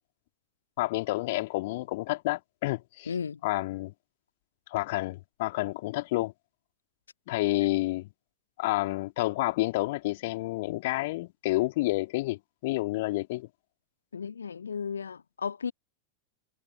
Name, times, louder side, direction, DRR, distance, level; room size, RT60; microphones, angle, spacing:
voice 1, 0.8-3.1 3.4-3.9 4.7-6.3 7.3-8.1 8.6-13.5, left 20 dB, 50° left, 1.9 m, -29 dB
voice 2, 3.1-3.4 14.1-15.7, left 6 dB, 70° left, 1.8 m, -34 dB
figure-of-eight pair, 90°, 0 cm